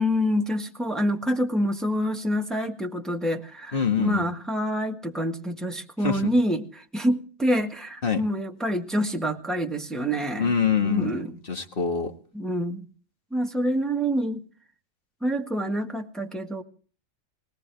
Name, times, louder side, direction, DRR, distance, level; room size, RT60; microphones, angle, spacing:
voice 1, 0.0-10.5 10.8-11.4 12.3-12.8 13.3-14.4 15.2-16.6, equal, ahead, 3 dB, 1.4 m, -27 dB
voice 2, 3.7-4.2 6.0-6.3 8.0-8.2 10.4-12.1, left 6 dB, 45° left, 5 dB, 1.9 m, -25 dB
21.0 x 18.0 x 3.4 m, 0.42 s
omnidirectional pair, 1.4 m